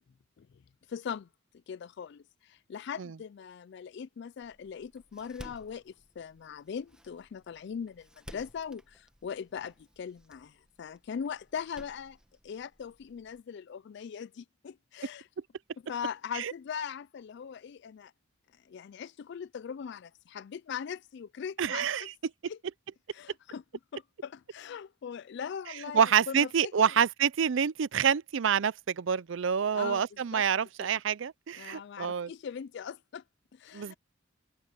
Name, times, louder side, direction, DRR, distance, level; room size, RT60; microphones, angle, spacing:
voice 1, 0.9-1.3 1.7-12.2 12.4-15.3 15.9-18.1 18.7-22.1 22.4-22.6 23.1-23.6 23.9-26.9 29.7-30.4 30.8-30.9 31.6-33.2 33.5-33.9, left 7 dB, 55° left, 0.3 m, -40 dB
Door, 4.4-13.4, equal, 5° right, 1.2 m, -55 dB
voice 2, 21.6-22.0 25.9-32.3 33.7-33.9, right 7 dB, 65° right, 0.5 m, -27 dB
open air
head